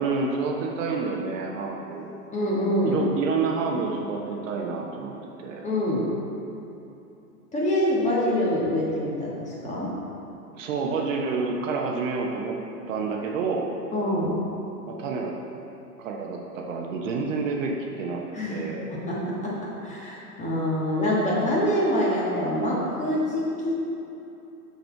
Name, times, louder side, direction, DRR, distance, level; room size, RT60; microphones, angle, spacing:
voice 1, 0.0-2.1 2.8-5.7 10.5-12.6 12.9-13.7 14.9-15.4 16.0-18.2 18.5-19.0, right 4 dB, 55° right, 0 dB, 0.9 m, -29 dB
voice 2, 2.3-3.0 5.6-6.0 7.5-9.9 13.9-14.3 18.3-18.6 18.9-23.7, equal, 15° left, -5 dB, 1.4 m, -25 dB
6.3 x 5.4 x 4.5 m, 2.9 s
hypercardioid pair, 115°, 48 cm